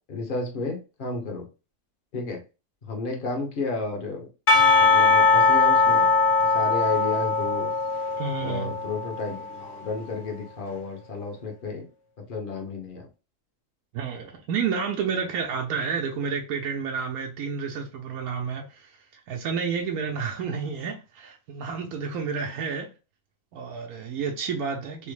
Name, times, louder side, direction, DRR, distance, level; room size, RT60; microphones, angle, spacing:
voice 1, 0.1-1.4 2.1-2.4 2.9-4.3 4.8-6.1 6.5-7.7 8.4-11.9 12.3-13.1, left 3 dB, 45° left, 0.8 m, -32 dB
Percussion / Church bell, 4.5-9.5, left 4 dB, 65° left, 0.5 m, -20 dB
voice 2, 8.2-8.8 13.9-22.9 23.5-25.1, right 6 dB, 80° right, 1.1 m, -30 dB
3.5 x 2.1 x 3.1 m
omnidirectional pair, 1.5 m